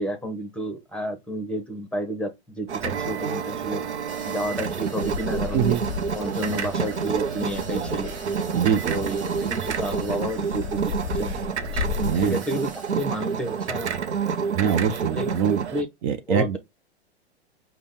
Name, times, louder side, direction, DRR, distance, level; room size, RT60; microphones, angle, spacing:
voice 1, 0.0-3.8 4.2-5.7 6.1-8.1 8.8-11.4 11.7-11.8 12.2-13.9 15.1-15.3 15.7-15.9 16.3-16.6, equal, 5° left, 1.0 m, -31 dB
sound 1, 2.7-15.8, right 6 dB, 80° right, 0.7 m, -28 dB
sound 2, 4.1-13.9, right 3 dB, 20° right, 1.4 m, -46 dB
Bird vocalization bird call bird song, 5.0-12.3, left 7 dB, 50° left, 0.5 m, -35 dB
voice 2, 5.5-5.8 8.5-9.0 12.0-12.4 14.5-15.7 16.0-16.6, right 8 dB, 40° right, 0.7 m, -23 dB
5.1 x 2.4 x 3.6 m
hypercardioid pair, 110°, 33 cm